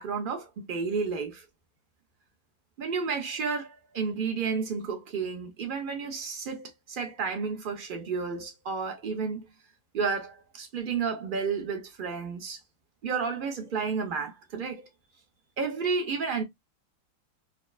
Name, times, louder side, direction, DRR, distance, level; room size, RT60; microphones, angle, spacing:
voice 1, 0.0-1.4 2.8-9.4 9.9-12.6 13.0-14.9 15.6-16.4, right 5 dB, 45° right, 0.7 m, -31 dB
5.6 x 2.1 x 2.3 m
omnidirectional pair, 2.1 m